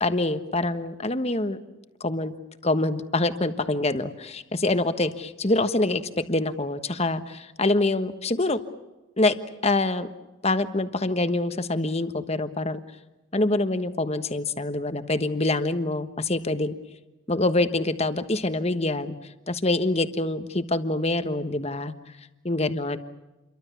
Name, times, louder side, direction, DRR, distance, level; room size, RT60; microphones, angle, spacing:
voice 1, 0.0-1.6 2.0-2.3 2.6-8.6 9.2-9.3 9.6-10.1 10.4-12.8 13.3-16.8 17.3-19.1 19.5-21.9 22.4-23.0, left 2 dB, 30° left, 10 dB, 1.3 m, -25 dB
29.0 x 23.5 x 7.1 m, 1.1 s
head